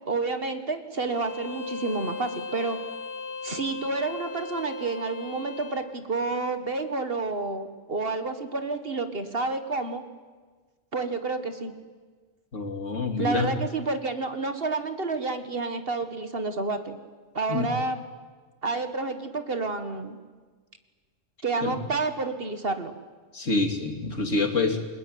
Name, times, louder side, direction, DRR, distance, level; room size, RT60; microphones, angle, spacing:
voice 1, 0.1-2.8 3.4-10.0 10.9-11.7 13.2-17.0 17.3-18.0 18.6-20.2 21.4-22.9, right 3 dB, 45° right, 8 dB, 1.9 m, -29 dB
Bowed string instrument, 1.1-5.9, left 3 dB, 50° left, 1.9 m, -37 dB
voice 2, 12.5-13.5 17.5-17.7 21.6-21.8 23.3-24.8, left 3 dB, 70° left, 5 dB, 3.1 m, -26 dB
28.5 x 21.5 x 9.5 m, 1.4 s
omnidirectional pair, 1.3 m